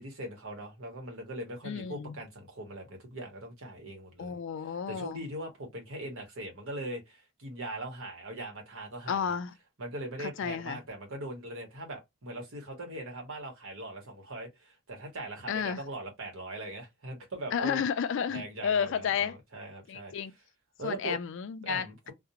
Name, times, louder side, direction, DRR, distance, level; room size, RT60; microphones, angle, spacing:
voice 1, 0.0-4.4 4.9-9.3 9.8-17.8 18.3-20.1 20.8-21.2 21.6-22.1, right 1 dB, 70° right, 1.0 m, -40 dB
voice 2, 1.6-2.1 4.2-5.2 9.1-9.5 10.2-10.8 15.5-15.8 17.5-19.3 19.9-20.3 20.8-22.1, left 7 dB, 55° left, 0.3 m, -32 dB
2.5 x 2.0 x 2.8 m
head